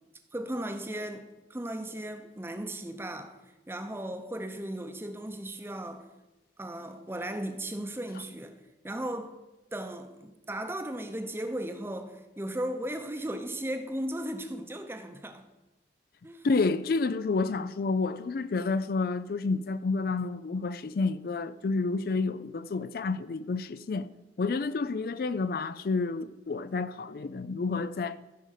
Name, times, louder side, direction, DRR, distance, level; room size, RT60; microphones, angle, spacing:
voice 1, 0.3-3.4 3.7-6.1 6.6-8.6 8.8-9.3 9.7-15.5 16.2-16.5, right 1 dB, 15° right, 0.7 m, -36 dB
voice 2, 16.4-24.1 24.4-28.2, left 3 dB, 55° left, 0.4 m, -29 dB
15.0 x 5.0 x 6.5 m
head